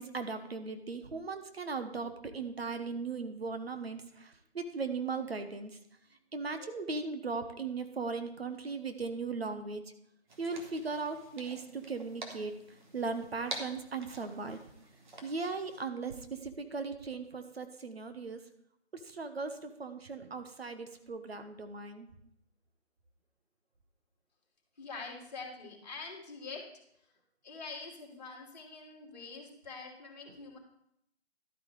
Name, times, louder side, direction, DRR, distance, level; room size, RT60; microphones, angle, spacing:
voice 1, 0.0-5.8 6.3-9.8 10.4-12.5 12.9-14.6 15.2-18.4 18.9-22.1 30.3-30.4, right 4 dB, 65° right, 8 dB, 1.1 m, -38 dB
sound 1, 10.3-15.8, right 2 dB, 45° right, 1.6 m, -48 dB
voice 2, 24.8-26.6 27.4-30.6, left 4 dB, 40° left, -2 dB, 2.6 m, -45 dB
12.5 x 8.9 x 3.3 m, 0.75 s
figure-of-eight pair, 160°, 33 cm